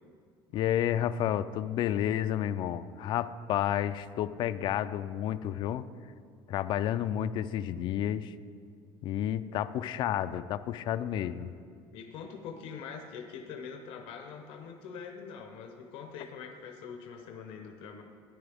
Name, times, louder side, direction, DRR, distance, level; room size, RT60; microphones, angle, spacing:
voice 1, 0.5-5.9 6.5-8.3 9.0-11.5, left 11 dB, 55° left, 14 dB, 0.4 m, -31 dB
voice 2, 11.1-11.4 11.9-18.0, left 6 dB, 75° left, 3 dB, 0.8 m, -44 dB
13.5 x 10.0 x 3.5 m, 2.2 s
cardioid pair, 150°, 10 cm